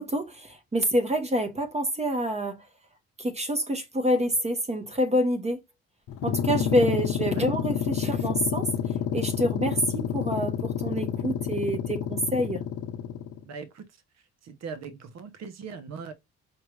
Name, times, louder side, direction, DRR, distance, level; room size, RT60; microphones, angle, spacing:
voice 1, 0.0-2.7 3.2-5.6 6.2-8.7 9.1-12.6, equal, 20° right, 0.9 m, -27 dB
sound 1, 6.1-13.4, left 9 dB, 75° left, 0.9 m, -29 dB
voice 2, 13.4-13.8 14.4-16.1, right 5 dB, 60° right, 0.9 m, -40 dB
4.9 x 2.6 x 3.2 m
cardioid pair, 90°, 30 cm